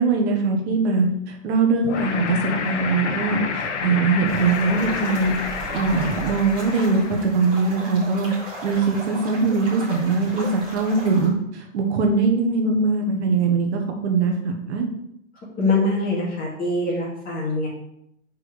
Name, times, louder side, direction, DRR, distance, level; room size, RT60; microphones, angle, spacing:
voice 1, 0.0-8.3 8.6-14.9, right 4 dB, 55° right, 2 dB, 1.5 m, -22 dB
sound 1, 1.8-7.3, left 5 dB, 60° left, 1.2 m, -29 dB
sound 2, 4.3-11.3, right 1 dB, 10° right, 3.0 m, -36 dB
voice 2, 15.6-17.7, left 2 dB, 20° left, -4 dB, 2.3 m, -23 dB
5.1 x 4.5 x 6.2 m, 0.76 s
hypercardioid pair, 135°, 39 cm